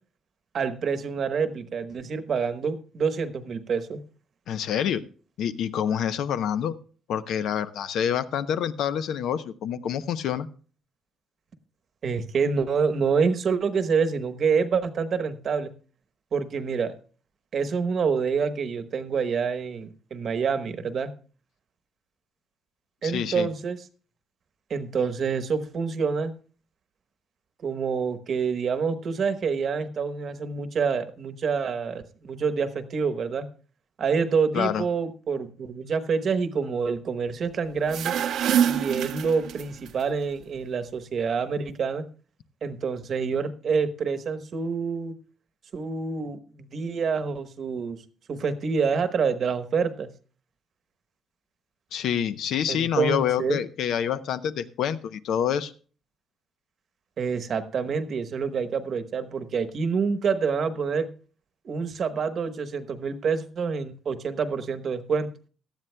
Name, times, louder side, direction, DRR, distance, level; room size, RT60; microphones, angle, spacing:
voice 1, 0.5-4.0 12.0-15.7 16.3-16.9 17.5-21.1 23.0-23.8 24.7-26.3 27.6-33.5 34.0-38.1 38.6-42.0 42.6-45.1 45.7-48.0 48.3-50.1 52.7-53.6 57.2-61.1 61.6-65.3, right 5 dB, 50° right, 11 dB, 1.1 m, -27 dB
voice 2, 4.5-5.0 5.4-6.8 7.1-10.5 23.0-23.5 34.5-34.8 51.9-55.7, left 9 dB, 80° left, 12 dB, 0.7 m, -27 dB
sound 1, 37.7-39.9, right 9 dB, 80° right, 0.8 m, -25 dB
17.5 x 12.5 x 2.2 m, 0.39 s
cardioid pair, 125°, 0 cm